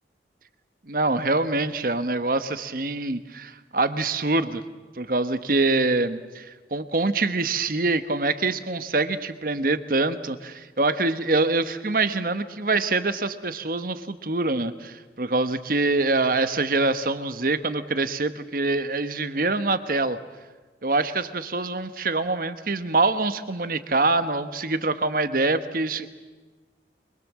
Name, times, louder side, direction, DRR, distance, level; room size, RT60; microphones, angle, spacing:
voice 1, 0.9-4.6 5.0-20.2 20.8-26.1, right 3 dB, 50° right, 11 dB, 1.2 m, -25 dB
24.0 x 22.5 x 7.5 m, 1.3 s
head